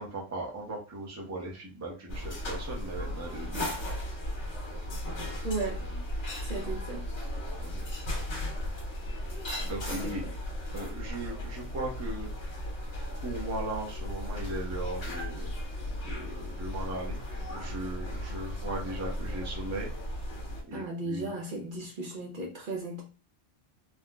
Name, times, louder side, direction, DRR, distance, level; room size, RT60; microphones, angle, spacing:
voice 1, 0.0-3.7 7.6-7.8 9.6-10.2 10.7-12.3 13.2-15.5 15.9-17.2 17.5-19.9 20.7-21.3, right 2 dB, 20° right, -2 dB, 0.5 m, -38 dB
sound 1, 2.1-20.6, left 1 dB, 90° left, 1.5 m, -36 dB
voice 2, 5.4-6.0 6.4-7.1 9.9-10.3 20.7-23.0, right 2 dB, 55° right, 0 dB, 0.7 m, -36 dB
3.6 x 2.1 x 2.3 m, 0.33 s
omnidirectional pair, 1.1 m